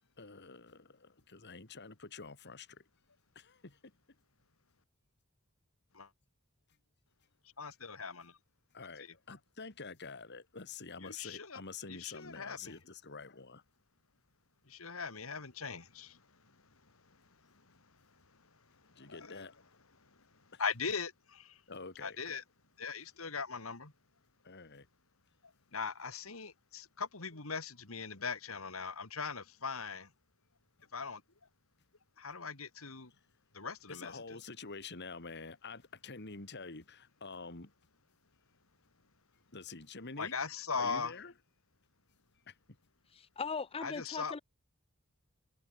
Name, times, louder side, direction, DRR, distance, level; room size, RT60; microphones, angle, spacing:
voice 1, 0.2-2.8 3.4-3.9 8.7-13.6 19.0-19.6 20.5-20.6 21.7-22.4 24.4-24.9 33.9-37.7 39.5-40.4 40.7-41.3 42.5-42.6, left 4 dB, 55° left, 2.3 m, -47 dB
voice 2, 7.6-8.4 9.0-9.1 11.0-11.6 11.9-12.7 14.7-16.6 17.4-17.8 18.8-19.5 20.0-21.6 22.0-22.4 22.8-23.9 25.4-30.1 30.9-31.2 32.2-33.1 33.5-34.4 40.2-41.1 43.8-44.4, left 5 dB, 80° left, 2.7 m, -40 dB
voice 3, 43.1-44.4, left 5 dB, 25° left, 0.6 m, -39 dB
head